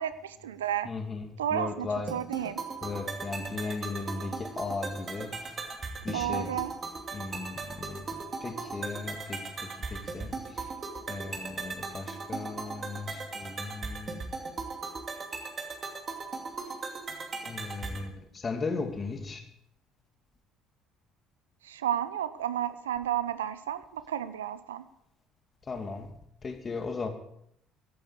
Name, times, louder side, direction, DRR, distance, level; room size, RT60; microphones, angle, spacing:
voice 1, 0.0-0.9 1.4-2.6 6.1-6.7 21.6-24.8, right 10 dB, 85° right, 0.6 m, -32 dB
voice 2, 0.8-2.1 2.4-2.5 2.8-5.5 6.0-6.5 7.1-8.1 8.4-10.6 11.1-14.2 17.4-19.4 25.7-26.1 26.4-27.1, left 4 dB, 35° left, 2.4 m, -36 dB
sound 1, 2.1-18.1, right 4 dB, 35° right, 2.5 m, -38 dB
15.0 x 11.5 x 4.9 m
hypercardioid pair, 60°, 0 cm